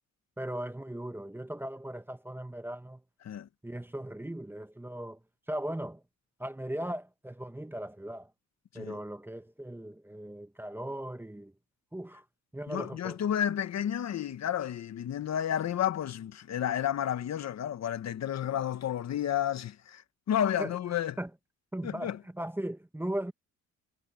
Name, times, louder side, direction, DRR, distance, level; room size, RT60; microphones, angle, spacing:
voice 1, 0.4-3.0 3.6-5.2 5.5-6.0 6.4-8.3 8.7-11.5 11.9-12.2 12.5-13.2 20.6-20.8 21.2-21.3 21.7-23.3, right 1 dB, 5° right, 1.2 m, -38 dB
voice 2, 12.7-21.2 21.8-22.2, left 10 dB, 60° left, 1.5 m, -31 dB
cardioid pair, 90°, 30 cm